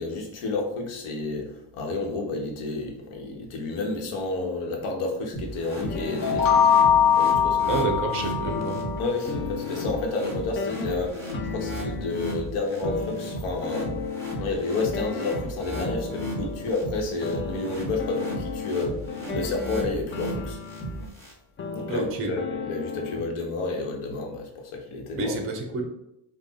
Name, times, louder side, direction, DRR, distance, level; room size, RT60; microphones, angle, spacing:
voice 1, 0.0-6.6 7.2-7.9 9.0-13.9 14.4-19.0 19.3-20.6 21.7-25.4, left 3 dB, 80° left, 2 dB, 1.2 m, -30 dB
sound 1, 5.3-21.3, right 1 dB, 5° left, 1.4 m, -35 dB
sound 2, 5.8-8.0 8.4-12.4 12.8-16.8 17.2-21.1 21.6-23.3, left 5 dB, 25° left, 0.3 m, -35 dB
sound 3, 6.2-9.0, left 8 dB, 45° left, 0.8 m, -21 dB
voice 2, 7.7-8.8 21.9-22.3 25.2-25.8, right 3 dB, 25° right, 3 dB, 0.7 m, -28 dB
4.6 x 2.4 x 4.1 m, 0.84 s
cardioid pair, 105°, 50 cm